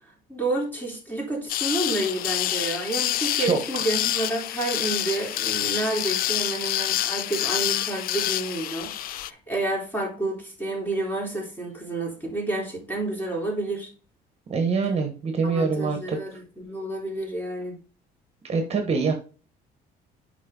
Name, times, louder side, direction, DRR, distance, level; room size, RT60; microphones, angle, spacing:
voice 1, 0.3-13.9 15.4-17.8, right 2 dB, 10° left, -2 dB, 3.7 m, -30 dB
sound 1, 1.5-9.3, left 13 dB, 60° left, 0.4 m, -27 dB
voice 2, 14.5-16.2 18.4-19.1, right 4 dB, 40° right, 5 dB, 1.3 m, -24 dB
7.6 x 5.2 x 3.8 m, 0.37 s
cardioid pair, 110°, 17 cm